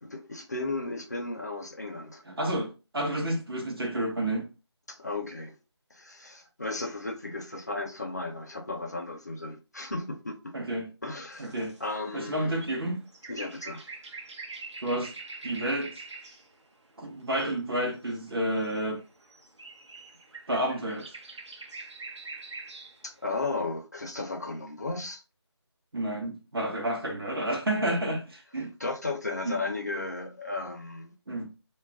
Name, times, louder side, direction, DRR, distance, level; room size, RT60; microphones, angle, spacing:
voice 1, 0.0-2.2 4.9-5.6 5.9-10.5 11.0-12.6 13.3-13.9 23.0-25.2 28.8-31.1, left 3 dB, 35° left, 0.4 m, -35 dB
voice 2, 2.3-4.5 10.5-10.9 11.4-11.7 12.1-13.0 14.8-15.1 15.4-15.9 17.0-19.0 20.5-21.1 25.9-28.7 29.4-29.6 31.3-31.5, right 1 dB, 55° right, 0.9 m, -30 dB
sound 1, 11.3-16.6 16.9-23.3, right 3 dB, 85° right, 0.8 m, -45 dB
2.3 x 2.0 x 3.3 m
figure-of-eight pair, 170°, 15 cm